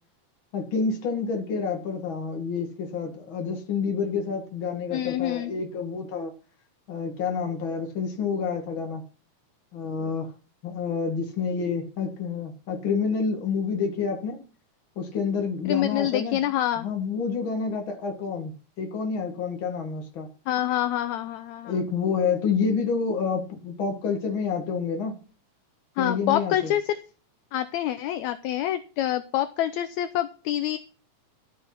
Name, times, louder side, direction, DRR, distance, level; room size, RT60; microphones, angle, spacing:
voice 1, 0.5-6.3 6.9-9.0 9.7-10.3 10.6-14.4 15.0-16.4 16.8-20.3 21.6-25.2 26.0-26.7, left 5 dB, 45° left, 2.4 m, -28 dB
voice 2, 4.9-5.5 15.7-16.9 20.5-21.7 26.0-27.0 27.5-30.8, left 12 dB, 75° left, 1.8 m, -26 dB
13.0 x 6.0 x 5.9 m
omnidirectional pair, 3.6 m